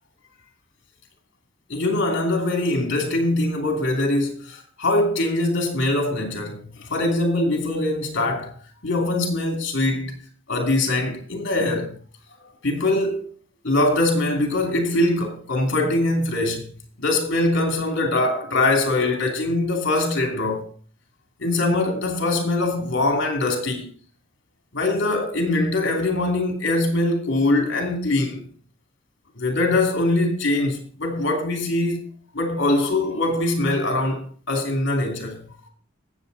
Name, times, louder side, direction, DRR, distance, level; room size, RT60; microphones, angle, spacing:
voice 1, 1.7-8.5 8.8-10.2 10.5-11.9 12.6-13.3 13.6-16.7 17.0-20.7 21.4-23.9 24.7-28.5 29.4-32.0 32.3-35.5, left 2 dB, 55° left, 2.9 m, -22 dB
18.5 x 7.6 x 4.1 m
head